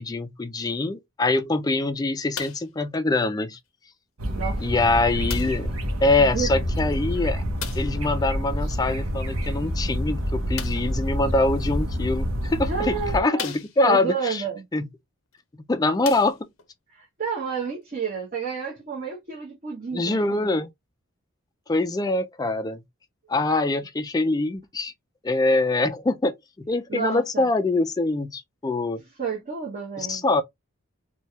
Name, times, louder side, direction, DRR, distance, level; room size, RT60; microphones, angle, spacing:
voice 1, 0.0-3.6 4.6-5.7 6.0-7.4 7.8-14.4 14.7-14.9 15.7-16.4 19.9-20.7 21.7-22.8 23.3-24.9 25.2-29.0 30.0-30.4, left 2 dB, 20° left, 0.3 m, -24 dB
sound 1, 2.3-2.8 3.7-3.8 5.3-5.7 7.6-8.0 10.5-11.0 11.9-12.0 12.7-12.8 13.3-14.1 15.3-15.4 15.9-16.7 17.5-17.6, left 9 dB, 70° left, 0.5 m, -36 dB
sound 2, 4.2-13.2, equal, 75° right, 0.8 m, -27 dB
voice 2, 4.3-4.7 6.2-6.5 12.7-13.5 13.8-14.6 16.9-20.5 26.9-27.5 29.2-30.2, right 6 dB, 40° right, 0.9 m, -30 dB
3.2 x 2.2 x 2.7 m
head